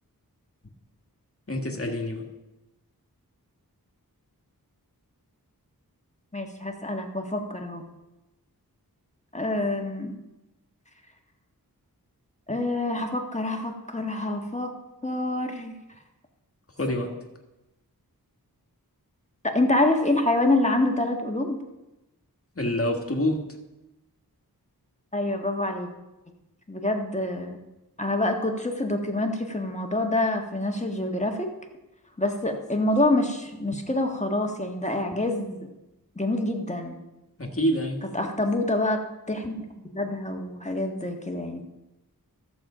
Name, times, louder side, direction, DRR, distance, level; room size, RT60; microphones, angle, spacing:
voice 1, 1.5-2.3 16.8-17.2 22.6-23.5 37.4-38.1, equal, 35° left, 2 dB, 1.8 m, -27 dB
voice 2, 6.3-7.8 9.3-10.1 12.5-14.7 15.0-15.7 19.4-21.6 25.1-25.9 26.7-27.6 28.0-31.5 32.2-35.7 36.1-37.0 38.1-39.0 39.3-41.6, left 2 dB, 20° left, 3 dB, 1.6 m, -26 dB
14.0 x 7.1 x 5.0 m, 0.98 s
wide cardioid pair, 45°, 37 cm